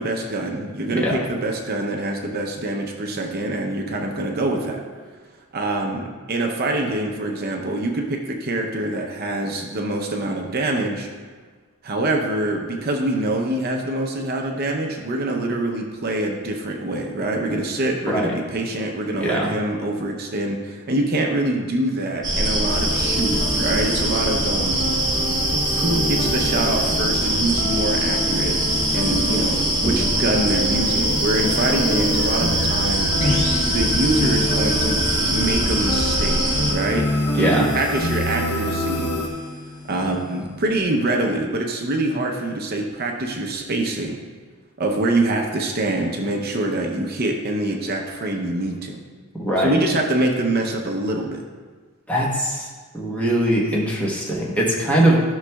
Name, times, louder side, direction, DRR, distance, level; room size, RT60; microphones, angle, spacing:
voice 1, 0.0-4.8 5.5-11.1 11.8-24.8 25.7-28.6 28.9-33.1 33.7-36.4 36.7-39.1 39.9-44.2 44.8-49.0 49.6-51.4, right 2 dB, 45° right, 2 dB, 0.7 m, -25 dB
voice 2, 19.2-19.5 37.4-37.7 49.4-49.8 52.1-52.7 52.9-55.2, right 1 dB, 5° left, -5 dB, 1.1 m, -21 dB
sound 1, 22.2-36.7, right 1 dB, 20° right, 1.1 m, -22 dB
sound 2, 22.7-39.3, left 1 dB, 70° left, 0.9 m, -27 dB
sound 3, 33.2-40.8, left 2 dB, 35° left, 1.3 m, -33 dB
12.5 x 6.1 x 2.3 m, 1.5 s
head